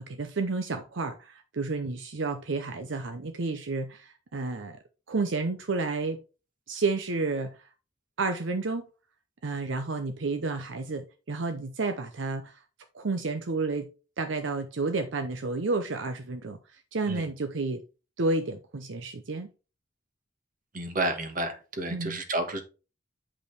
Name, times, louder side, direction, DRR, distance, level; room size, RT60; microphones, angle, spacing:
voice 1, 0.1-4.8 5.1-6.2 6.7-7.6 8.2-8.9 9.4-12.6 12.9-13.9 14.2-17.8 18.2-19.5 21.9-22.2, right 3 dB, 75° right, 0.7 m, -31 dB
voice 2, 20.7-22.6, right 2 dB, 45° right, 1.4 m, -31 dB
8.6 x 5.3 x 3.2 m
head